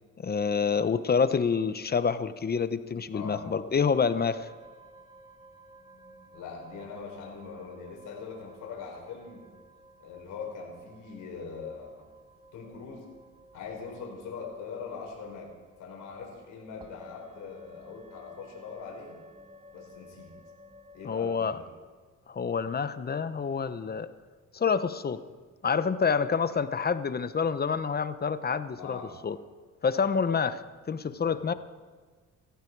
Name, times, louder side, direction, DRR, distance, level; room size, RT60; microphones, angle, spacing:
voice 1, 0.2-4.5 21.0-21.6 22.3-24.1 24.5-25.2 25.6-29.4 29.8-30.6 30.9-31.5, left 6 dB, 30° left, 12 dB, 0.9 m, -27 dB
voice 2, 3.1-3.4 6.3-9.4 10.0-12.0 12.5-13.0 13.5-15.5 15.8-19.2 19.7-20.3 20.9-21.6 28.7-29.1 31.1-31.4, left 5 dB, 85° left, -1 dB, 4.8 m, -42 dB
sound 1, 4.0-21.2, equal, 15° right, 1.9 m, -54 dB
18.5 x 15.0 x 4.7 m, 1.5 s
cardioid pair, 90°, 30 cm